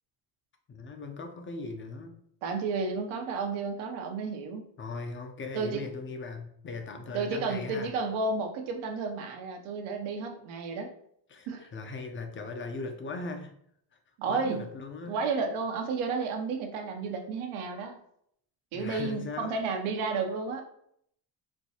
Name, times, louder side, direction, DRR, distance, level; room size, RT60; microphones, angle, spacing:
voice 1, 0.7-2.2 4.8-7.9 11.3-13.5 14.3-15.2 18.7-19.5, left 3 dB, 25° left, 4 dB, 0.6 m, -39 dB
voice 2, 2.4-4.6 5.5-5.8 7.1-10.9 11.5-11.6 14.2-14.7 15.1-18.0 18.7-20.6, right 4 dB, 75° right, 4 dB, 0.8 m, -32 dB
4.4 x 2.2 x 2.8 m, 0.69 s
supercardioid pair, 85°, 49 cm